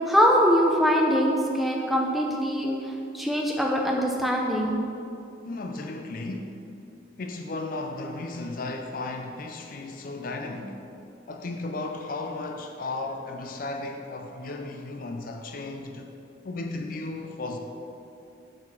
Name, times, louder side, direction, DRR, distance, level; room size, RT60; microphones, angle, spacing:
voice 1, 0.0-4.8, equal, ahead, -1 dB, 0.6 m, -23 dB
voice 2, 5.4-6.6 7.2-10.8 11.3-16.1 16.4-17.6, left 2 dB, 45° left, 4 dB, 0.4 m, -35 dB
7.3 x 4.2 x 5.9 m, 2.6 s
head